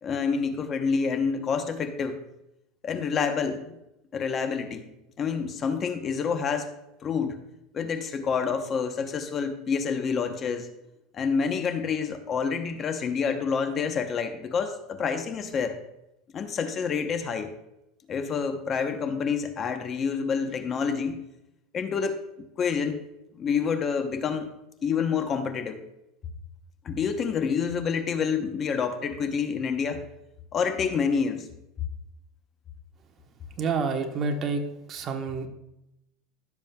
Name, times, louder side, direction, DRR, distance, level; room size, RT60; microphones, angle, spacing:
voice 1, 0.0-2.2 2.8-3.8 4.1-4.8 5.2-6.7 7.0-7.4 7.7-10.7 11.1-15.8 16.3-17.5 18.1-21.2 21.7-22.2 22.6-23.1 23.4-24.5 24.8-25.8 26.8-30.0 30.5-31.5, left 6 dB, 30° left, 8 dB, 0.9 m, -28 dB
voice 2, 33.6-34.6 34.9-35.5, right 4 dB, 35° right, 5 dB, 1.2 m, -28 dB
15.5 x 7.0 x 2.3 m, 0.89 s
supercardioid pair, 130°, 0 cm